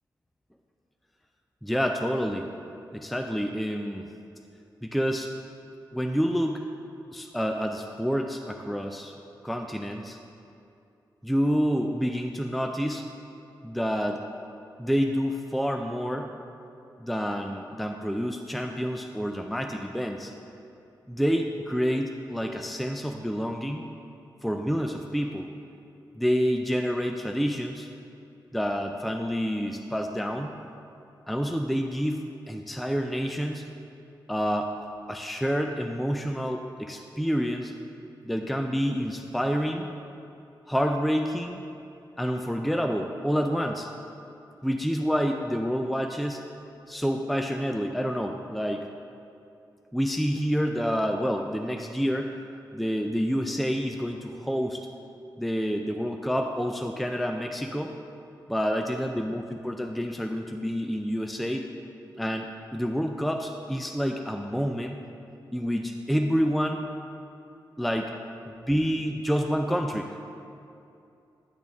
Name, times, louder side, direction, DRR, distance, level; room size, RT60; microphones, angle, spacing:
voice 1, 1.6-2.5 2.9-4.1 4.8-5.3 5.9-6.6 7.1-9.1 9.4-10.2 11.2-13.0 13.6-14.2 14.8-16.3 17.0-20.3 21.1-23.8 24.4-25.5 26.1-27.9 28.5-30.5 31.3-33.6 34.3-34.7 35.1-37.7 38.2-39.9 40.7-41.6 42.2-43.9 44.6-46.4 46.9-48.9 49.9-52.3 52.7-54.8 55.4-57.9 58.5-61.7 62.2-65.0 65.5-66.8 67.8-68.2 68.6-70.2, equal, ahead, 3 dB, 0.4 m, -28 dB
10.0 x 6.2 x 3.5 m, 2.7 s
wide cardioid pair, 100°, 8 cm